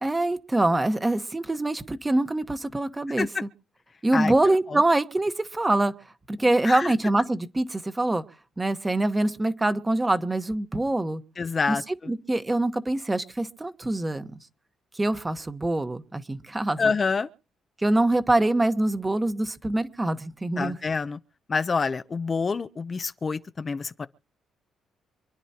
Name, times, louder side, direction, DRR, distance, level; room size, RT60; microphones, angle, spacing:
voice 1, 0.0-3.3 4.0-5.9 6.3-8.2 8.6-11.2 11.7-11.8 12.1-14.3 14.9-16.9 17.8-20.8, right 2 dB, 15° right, 1.2 m, -24 dB
voice 2, 11.4-12.1 16.8-17.3 20.6-21.2 21.5-24.1, left 4 dB, 35° left, 0.6 m, -27 dB
27.0 x 10.0 x 2.9 m
cardioid pair, 90°, 0 cm